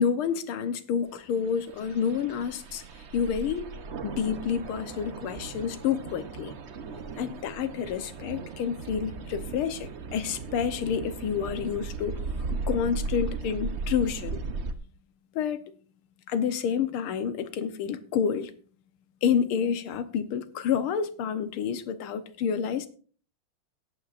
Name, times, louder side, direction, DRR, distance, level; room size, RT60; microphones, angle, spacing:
voice 1, 0.0-2.8 3.1-3.7 4.0-6.5 7.2-14.4 15.4-15.6 16.3-18.5 19.2-22.9, left 7 dB, 80° left, 1.8 m, -29 dB
sound 1, 1.4-14.7, right 4 dB, 70° right, 0.6 m, -37 dB
18.0 x 8.5 x 2.5 m
omnidirectional pair, 2.3 m